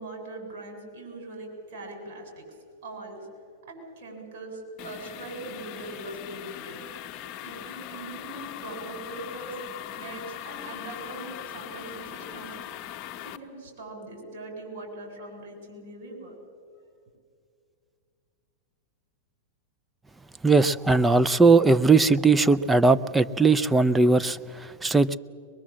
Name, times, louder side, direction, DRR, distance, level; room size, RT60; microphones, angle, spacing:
voice 1, 0.0-2.5 2.8-3.3 3.7-6.8 7.4-9.6 10.0-12.5 13.2-16.4, right 2 dB, 55° right, 3 dB, 7.6 m, -41 dB
sound 1, 4.8-13.4, left 12 dB, 40° left, 1.0 m, -40 dB
voice 2, 20.4-25.2, right 3 dB, 10° right, 14 dB, 0.5 m, -19 dB
23.0 x 22.5 x 7.5 m, 2.3 s
hypercardioid pair, 135°, 0 cm